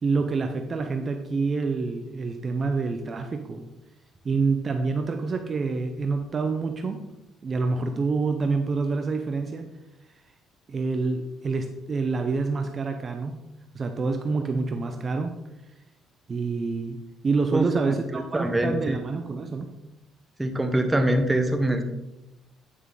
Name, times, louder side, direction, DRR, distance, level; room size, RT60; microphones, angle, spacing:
voice 1, 0.0-3.7 4.2-7.0 7.4-9.7 10.7-13.4 13.7-15.3 16.3-17.0 17.2-19.7, right 4 dB, 35° right, 5 dB, 0.7 m, -27 dB
voice 2, 17.5-19.0 20.4-21.8, right 1 dB, 10° right, 5 dB, 1.1 m, -24 dB
9.4 x 6.0 x 3.9 m, 0.93 s
cardioid pair, 100°, 0 cm